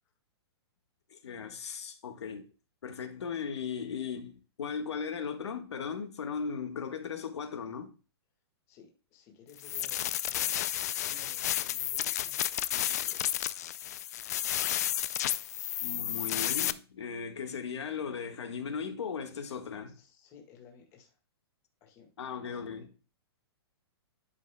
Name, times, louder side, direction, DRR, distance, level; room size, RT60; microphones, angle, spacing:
voice 1, 1.1-2.5 2.8-7.9 15.8-19.9 22.2-22.9, left 6 dB, 85° left, 1.5 m, -37 dB
voice 2, 8.7-10.6 11.0-13.5 19.9-21.1 21.8-22.1 22.4-22.9, left 6 dB, 20° left, 1.6 m, -57 dB
sound 1, 9.6-16.7, left 12 dB, 40° left, 0.3 m, -32 dB
11.5 x 5.3 x 2.2 m
hypercardioid pair, 170°, 14 cm